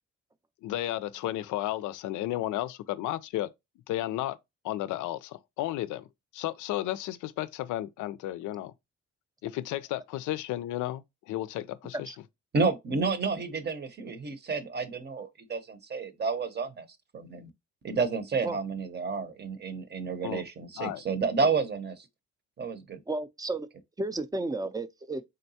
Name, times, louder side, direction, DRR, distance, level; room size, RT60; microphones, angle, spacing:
voice 1, 0.6-3.5 3.9-4.4 4.6-6.1 6.3-8.7 9.4-12.1 20.2-20.4 20.8-21.0, left 14 dB, 80° left, 0.5 m, -33 dB
voice 2, 12.5-16.9 17.1-17.5 17.8-22.1 22.6-23.0, right 4 dB, 35° right, 0.7 m, -30 dB
voice 3, 23.1-23.7 24.0-25.2, right 2 dB, 15° right, 0.4 m, -32 dB
3.9 x 3.3 x 2.7 m
cardioid pair, 90°, 30 cm